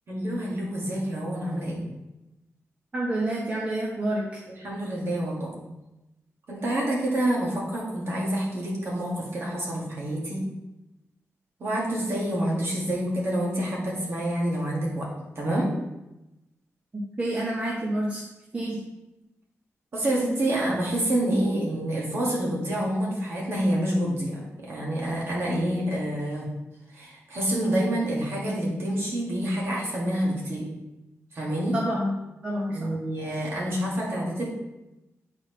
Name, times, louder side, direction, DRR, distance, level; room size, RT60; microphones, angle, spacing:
voice 1, 0.1-1.8 4.6-5.5 6.5-10.4 11.6-15.1 15.4-15.7 19.9-26.5 26.9-30.7 31.3-31.8 32.7-34.5, right 1 dB, 50° right, -4 dB, 1.9 m, -27 dB
voice 2, 2.9-4.2 17.2-18.2 18.5-18.8 31.7-32.1 32.4-32.9, right 1 dB, 25° right, -5 dB, 1.1 m, -28 dB
8.6 x 4.2 x 3.2 m, 0.97 s
wide cardioid pair, 155°, 5 cm